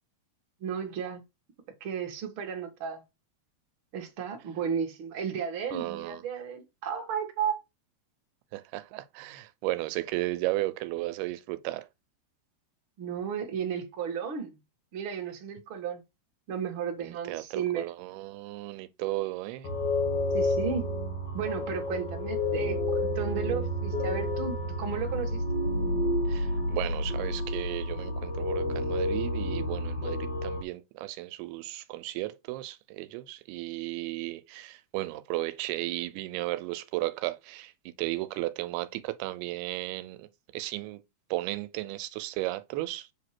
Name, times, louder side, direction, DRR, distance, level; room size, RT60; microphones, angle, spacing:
voice 1, 0.6-1.2 1.8-3.0 3.9-7.6 13.0-14.6 14.9-16.0 16.5-17.9 20.3-20.9 21.3-25.4, right 7 dB, 50° right, 1.6 m, -33 dB
voice 2, 5.7-6.2 8.5-11.9 17.0-19.7 26.3-37.7 38.0-40.3 40.5-41.0 41.3-43.1, right 18 dB, 85° right, 2.6 m, -34 dB
sound 1, 19.6-30.6, left 1 dB, 85° left, 0.9 m, -30 dB
7.6 x 2.9 x 5.8 m
omnidirectional pair, 4.5 m